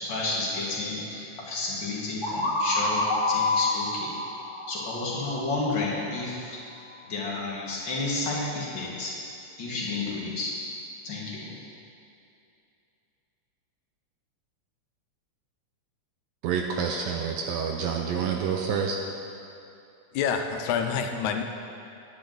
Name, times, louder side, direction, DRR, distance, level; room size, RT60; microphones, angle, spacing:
voice 1, 0.0-4.1 4.7-6.6 7.1-9.1 9.6-10.5 11.0-11.5, left 2 dB, 45° left, -5 dB, 2.0 m, -31 dB
sound 1, 2.2-6.0, left 2 dB, 15° left, 2.4 m, -28 dB
voice 2, 16.4-19.0, right 6 dB, 80° right, 2 dB, 1.6 m, -28 dB
voice 3, 20.1-21.4, left 7 dB, 85° left, 5 dB, 2.1 m, -27 dB
10.5 x 9.4 x 3.9 m, 2.7 s
omnidirectional pair, 3.3 m